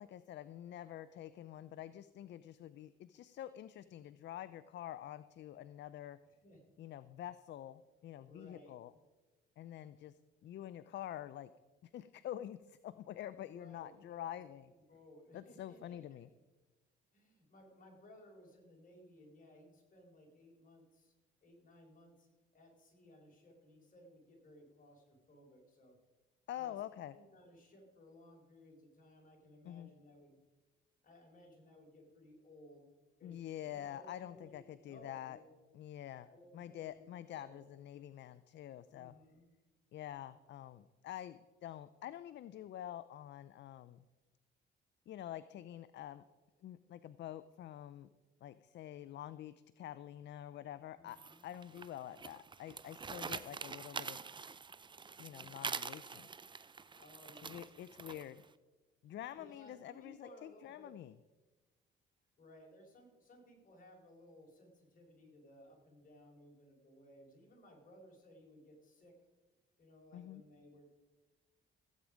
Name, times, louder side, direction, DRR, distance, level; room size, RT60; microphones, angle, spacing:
voice 1, 0.0-6.2 6.8-8.9 9.6-11.5 11.9-14.7 15.3-16.3 26.5-27.1 29.6-29.9 33.2-35.4 35.7-36.3 36.5-39.1 39.9-44.0 45.1-46.2 46.6-48.1 48.4-54.2 55.2-56.3 57.4-58.4 59.0-61.1 70.1-70.4, left 12 dB, 65° left, 15 dB, 0.5 m, -47 dB
voice 2, 8.3-9.0 13.5-14.4 14.9-16.2 17.1-21.1 21.4-25.9 26.6-26.8 27.1-30.4 31.0-32.9 33.2-35.6 36.2-37.0 37.3-37.6 38.9-39.5 50.9-51.5 55.2-55.7 57.0-58.2 59.3-60.9 62.4-69.2 69.8-70.9, left 1 dB, 45° left, 0 dB, 4.3 m, -60 dB
sound 1, 51.1-58.4, right 5 dB, 25° right, 0.5 m, -45 dB
16.0 x 8.6 x 5.0 m, 1.2 s
cardioid pair, 90°, 20 cm